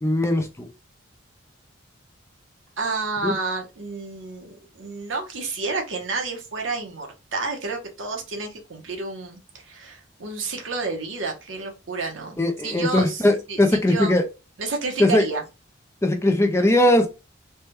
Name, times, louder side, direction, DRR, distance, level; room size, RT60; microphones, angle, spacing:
voice 1, 0.0-0.7 3.2-3.3 12.4-14.2 15.0-15.2 16.0-17.1, left 1 dB, 15° left, 0.3 m, -19 dB
voice 2, 2.8-14.2 14.6-15.4, right 3 dB, 70° right, 0.9 m, -30 dB
3.3 x 2.2 x 2.9 m
head